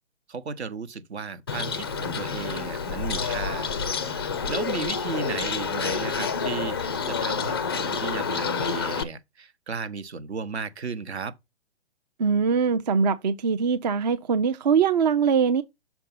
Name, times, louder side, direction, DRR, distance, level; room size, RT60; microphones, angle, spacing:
voice 1, 0.3-11.3, right 5 dB, 65° right, 1.0 m, -35 dB
Bird, 1.5-9.0, left 6 dB, 25° left, 0.3 m, -28 dB
voice 2, 12.2-15.6, right 6 dB, 40° right, 0.5 m, -22 dB
6.0 x 4.5 x 5.4 m
figure-of-eight pair, 130°, 35 cm